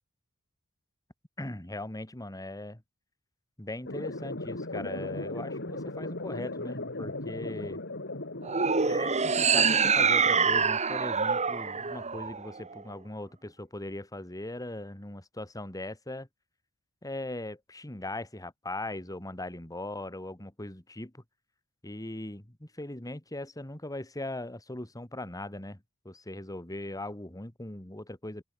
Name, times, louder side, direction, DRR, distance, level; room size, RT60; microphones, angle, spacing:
voice 1, 1.4-2.8 3.6-7.8 8.8-16.3 17.0-21.2 21.8-28.4, left 1 dB, 15° left, 2.2 m, -39 dB
sound 1, 3.9-9.9, left 2 dB, 55° left, 4.7 m, -37 dB
sound 2, 8.4-12.8, right 5 dB, 30° right, 2.2 m, -25 dB
open air
head